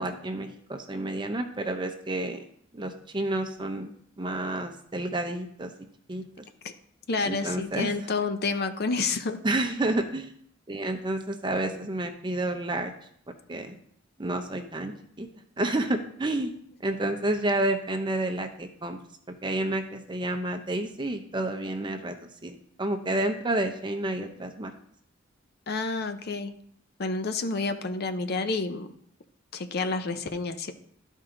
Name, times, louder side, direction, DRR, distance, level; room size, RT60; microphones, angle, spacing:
voice 1, 0.0-2.4 2.7-3.9 4.2-5.7 6.1-6.2 7.2-7.9 9.4-10.3 10.7-12.9 13.5-13.8 14.2-14.9 15.2-15.3 15.6-16.5 16.8-19.0 19.4-22.1 22.4-24.7, right 1 dB, 25° right, 6 dB, 0.7 m, -30 dB
voice 2, 7.1-9.4 25.7-26.5 27.0-28.9 29.5-30.7, left 3 dB, 55° left, 9 dB, 0.6 m, -29 dB
12.5 x 4.5 x 3.8 m, 0.65 s
head